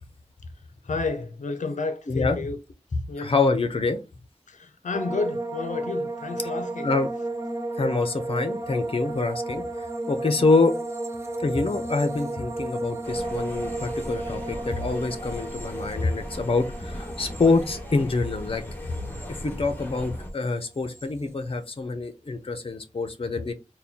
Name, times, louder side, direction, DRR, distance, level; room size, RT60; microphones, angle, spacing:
voice 1, 0.8-2.6 3.1-3.3 4.5-6.9, left 3 dB, 85° left, 0.5 m, -31 dB
voice 2, 2.1-2.4 3.2-4.0 6.8-7.1 7.8-9.6 10.1-10.7 11.4-19.0 19.4-23.5, left 3 dB, 50° left, 0.7 m, -25 dB
sound 1, 4.9-20.2 20.4-21.1, right 2 dB, 20° right, 0.9 m, -33 dB
sound 2, 13.0-20.3, equal, 15° left, 1.1 m, -38 dB
4.3 x 2.2 x 3.5 m
wide cardioid pair, 80°, 12 cm